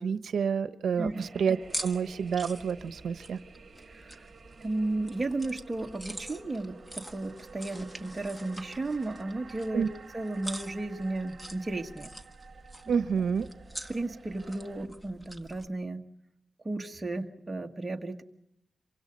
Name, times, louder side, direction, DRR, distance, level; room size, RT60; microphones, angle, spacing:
voice 1, 0.0-3.4 9.7-9.9 12.9-13.5, right 6 dB, 80° right, 12 dB, 0.9 m, -29 dB
sound 1, 1.1-14.9, right 5 dB, 40° right, 1.8 m, -52 dB
sound 2, 1.6-15.7, right 1 dB, 5° left, 1.5 m, -45 dB
voice 2, 3.9-4.3 4.6-9.9 10.1-12.1 13.9-16.1 16.6-18.2, right 2 dB, 15° right, 2 dB, 1.6 m, -34 dB
28.0 x 24.5 x 5.3 m, 0.77 s
wide cardioid pair, 175°, 0 cm